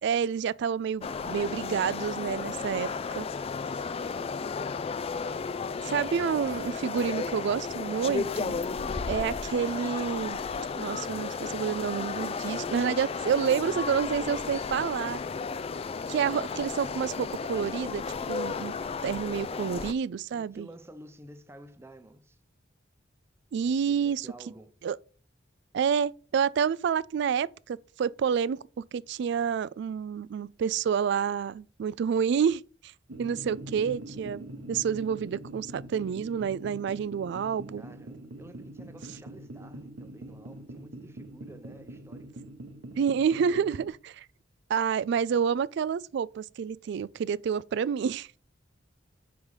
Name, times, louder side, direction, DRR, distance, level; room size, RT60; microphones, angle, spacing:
voice 1, 0.0-2.9 3.2-3.3 5.8-8.6 9.1-10.4 10.7-15.2 16.1-18.0 18.3-18.7 19.0-20.7 23.5-24.3 24.8-25.0 25.7-28.6 28.9-32.9 33.2-34.4 34.7-37.8 43.0-44.3 44.7-48.3, right 7 dB, 65° right, 0.3 m, -29 dB
sound 1, 1.0-19.9, left 5 dB, 30° left, 0.3 m, -33 dB
voice 2, 20.3-22.4 23.6-24.7 37.7-42.4, right 1 dB, 15° right, 0.6 m, -50 dB
sound 2, 33.1-43.9, right 1 dB, 80° right, 0.9 m, -44 dB
5.1 x 4.8 x 5.4 m
head